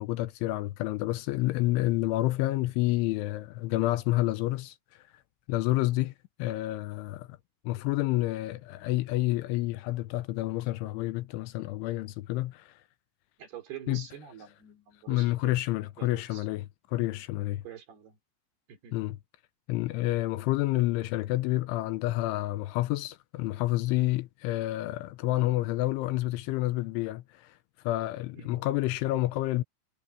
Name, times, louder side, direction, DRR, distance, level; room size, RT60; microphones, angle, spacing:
voice 1, 0.0-4.7 5.5-6.1 6.4-7.3 7.6-12.7 13.9-14.0 15.1-17.6 18.9-19.2 19.7-27.6 27.8-29.6, left 17 dB, 80° left, 3.1 m, -29 dB
voice 2, 13.4-15.5 16.0-16.5 17.6-18.2 18.7-19.0 28.3-28.7, right 9 dB, 55° right, 5.4 m, -46 dB
omnidirectional pair, 5.6 m